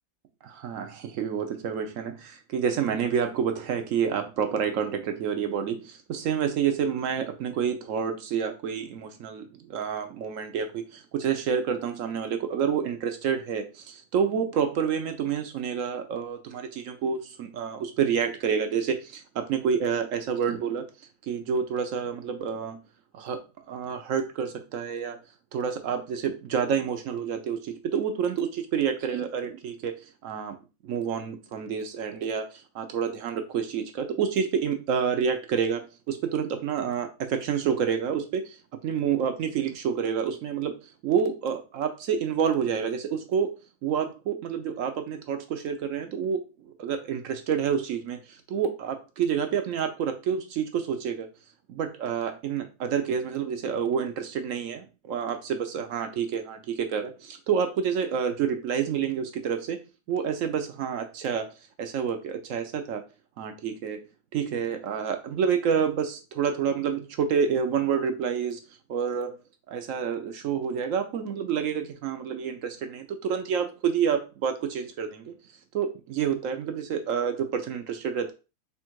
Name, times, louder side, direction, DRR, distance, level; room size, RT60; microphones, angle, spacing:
voice 1, 0.4-20.9 21.2-22.8 23.1-23.4 23.7-25.2 25.5-29.9 30.2-30.5 30.8-38.6 38.8-40.7 41.0-43.5 43.8-46.4 46.8-51.3 51.7-59.8 60.1-61.5 61.8-63.0 63.4-64.0 64.3-68.6 68.9-69.4 69.7-75.3 75.7-78.3, right 7 dB, 65° right, 6 dB, 0.8 m, -28 dB
3.5 x 2.4 x 4.4 m, 0.30 s
omnidirectional pair, 1.7 m